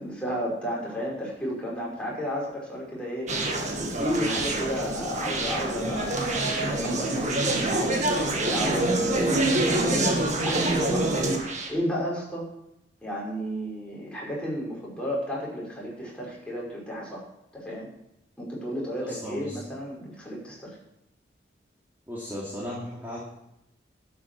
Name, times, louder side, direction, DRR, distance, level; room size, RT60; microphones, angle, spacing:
voice 1, 0.0-3.3 3.7-10.1 10.4-11.3 11.7-12.5 13.0-17.2 17.5-17.9 18.4-20.7, equal, 5° left, -5 dB, 5.5 m, -33 dB
Conversation, 3.3-11.7, right 2 dB, 40° right, 1.8 m, -26 dB
voice 2, 19.0-19.6 22.1-23.2, equal, 10° right, -7 dB, 2.8 m, -36 dB
12.5 x 8.6 x 6.2 m, 0.85 s
head